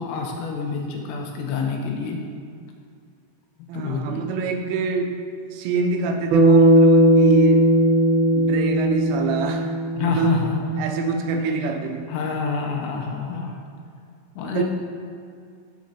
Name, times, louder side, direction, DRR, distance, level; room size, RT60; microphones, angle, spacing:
voice 1, 0.0-2.2 3.7-4.3 10.0-10.6 12.1-13.5 14.4-14.6, left 5 dB, 90° left, 1 dB, 3.1 m, -27 dB
voice 2, 3.7-5.2 5.5-7.7 8.3-10.5 10.8-12.1 14.4-14.6, right 4 dB, 90° right, 4 dB, 3.2 m, -26 dB
Bass guitar, 6.3-10.7, right 1 dB, 70° right, 2.6 m, -17 dB
14.5 x 5.2 x 2.8 m, 2.3 s
omnidirectional pair, 5.4 m